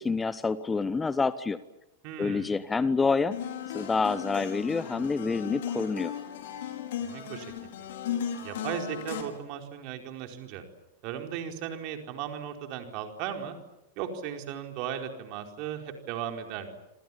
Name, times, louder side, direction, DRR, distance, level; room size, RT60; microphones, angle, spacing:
voice 1, 0.0-1.6 2.2-3.4 3.7-6.1, left 4 dB, 15° left, 17 dB, 0.9 m, -27 dB
voice 2, 2.0-2.5 7.0-7.9 8.4-10.6 11.0-13.5 14.0-16.8, right 9 dB, 45° right, 4 dB, 4.6 m, -36 dB
sound 1, 3.3-9.2, left 8 dB, 55° left, 4.9 m, -36 dB
28.0 x 27.0 x 7.3 m, 0.93 s
figure-of-eight pair, 90°, 0 cm